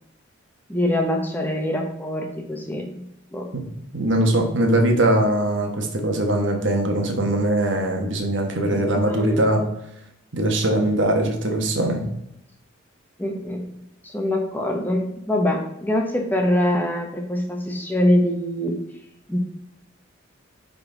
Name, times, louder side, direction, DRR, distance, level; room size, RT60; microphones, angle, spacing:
voice 1, 0.7-3.0 3.3-3.5 8.6-9.7 13.2-13.7 14.0-18.8 19.3-19.4, left 1 dB, 10° left, 2 dB, 0.8 m, -24 dB
voice 2, 3.9-9.6 10.3-12.0, right 1 dB, 60° right, 3 dB, 1.3 m, -21 dB
9.2 x 3.9 x 3.9 m, 0.81 s
head